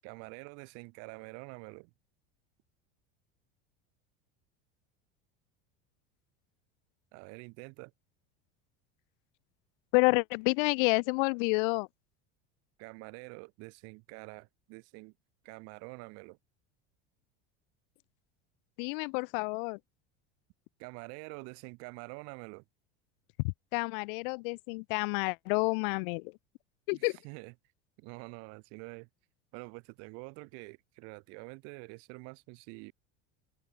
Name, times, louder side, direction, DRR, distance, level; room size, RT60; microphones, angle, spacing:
voice 1, 0.0-1.9 7.1-7.9 12.8-15.1 15.4-16.4 20.8-22.6 26.9-27.5 28.0-29.1 29.5-32.9, right 31 dB, 55° right, 7.9 m, -46 dB
voice 2, 9.9-11.9 18.8-19.8 23.4-26.3 26.9-27.2, left 32 dB, 60° left, 0.9 m, -29 dB
open air
cardioid pair, 175°, 30 cm